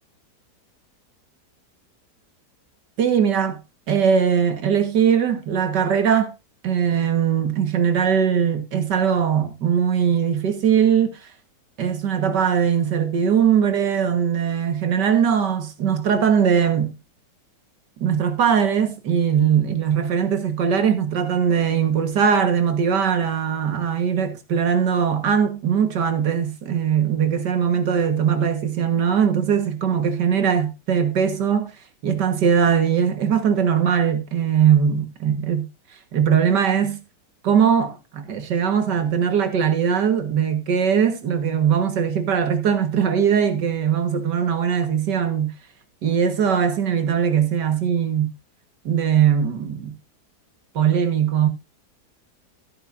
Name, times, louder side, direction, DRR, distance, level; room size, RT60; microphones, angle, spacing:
voice 1, 3.0-3.6 3.9-6.3 6.6-11.2 11.8-17.0 18.0-31.7 32.0-35.7 36.1-37.0 37.4-45.5 46.0-48.3 48.9-49.9 50.8-51.5, right 7 dB, 80° right, 2.1 m, -20 dB
14.5 x 9.6 x 2.6 m
omnidirectional pair, 1.8 m